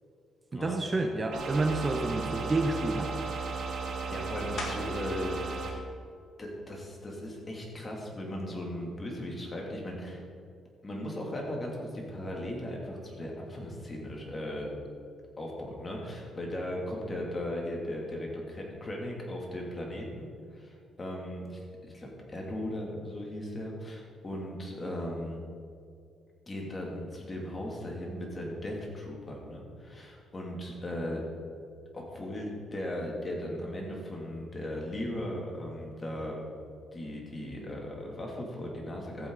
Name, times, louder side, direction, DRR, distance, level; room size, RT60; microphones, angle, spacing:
voice 1, 0.5-3.1, right 2 dB, 30° right, 4 dB, 0.9 m, -29 dB
sound 1, 1.3-5.7, right 4 dB, 75° right, 2.0 m, -35 dB
voice 2, 4.1-5.3 6.4-10.2 10.8-14.7 15.4-25.4 26.5-31.3 31.9-36.4 36.9-39.3, left 1 dB, 30° left, -1 dB, 2.7 m, -37 dB
sound 2, 4.6-5.2 5.7-10.1 10.7-15.8 16.1-21.8, left 2 dB, 60° left, 2.1 m, -50 dB
14.5 x 8.1 x 4.0 m, 2.3 s
cardioid pair, 90°, 0 cm